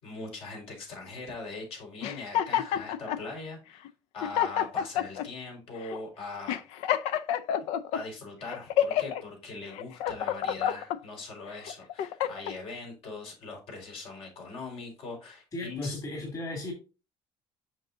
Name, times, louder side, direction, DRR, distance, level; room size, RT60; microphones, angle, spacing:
voice 1, 0.0-3.9 4.1-6.6 7.9-16.0, left 3 dB, 65° left, 1 dB, 4.6 m, -41 dB
sound 1, 2.0-3.2 3.8-3.9 4.2-5.3 5.8-6.0 6.5-8.0 8.5-9.2 9.7-11.0 11.5-12.6, left 10 dB, 85° left, 0.6 m, -29 dB
voice 2, 15.5-16.7, left 2 dB, 35° left, 0 dB, 2.7 m, -35 dB
7.8 x 6.2 x 2.7 m, 0.30 s
cardioid pair, 130°, 11 cm